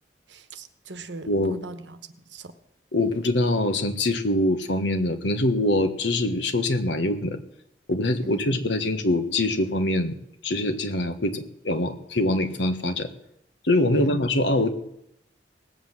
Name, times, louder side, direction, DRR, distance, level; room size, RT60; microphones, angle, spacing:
voice 1, 0.3-2.5 8.2-8.4 13.9-14.2, right 2 dB, 80° right, 1.2 m, -40 dB
voice 2, 1.3-1.6 2.9-7.4 7.9-10.2 10.4-13.1 13.6-14.7, left 1 dB, 80° left, 1.4 m, -24 dB
18.5 x 8.1 x 7.3 m
head